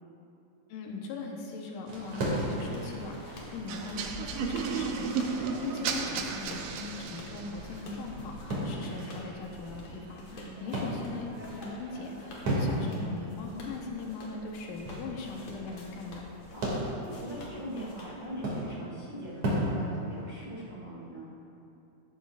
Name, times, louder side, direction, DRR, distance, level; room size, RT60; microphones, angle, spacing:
voice 1, 0.7-16.2, left 3 dB, 85° left, 0 dB, 2.8 m, -40 dB
sound 1, 1.9-20.7, right 1 dB, 60° right, 3.8 m, -37 dB
sound 2, 2.4-18.7, left 2 dB, 60° left, 2.8 m, -50 dB
sound 3, 3.7-7.6, right 6 dB, 80° right, 1.3 m, -33 dB
voice 2, 5.4-6.2 10.3-10.8 16.5-21.3, right 1 dB, 15° right, -8 dB, 2.5 m, -42 dB
15.0 x 13.0 x 2.6 m, 2.7 s
omnidirectional pair, 3.6 m